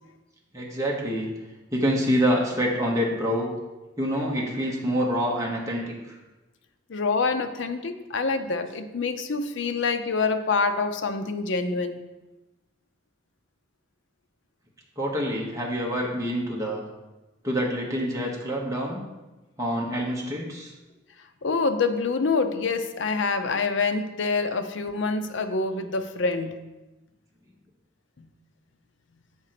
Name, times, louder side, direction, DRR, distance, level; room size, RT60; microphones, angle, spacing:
voice 1, 0.5-1.3 1.7-3.5 4.0-5.8 15.0-16.8 17.4-19.0 19.6-20.7, equal, 15° right, -3 dB, 1.1 m, -26 dB
voice 2, 6.9-12.0 21.4-26.6 28.2-28.3, left 4 dB, 65° left, 8 dB, 0.6 m, -26 dB
7.7 x 3.9 x 5.8 m, 1.1 s
head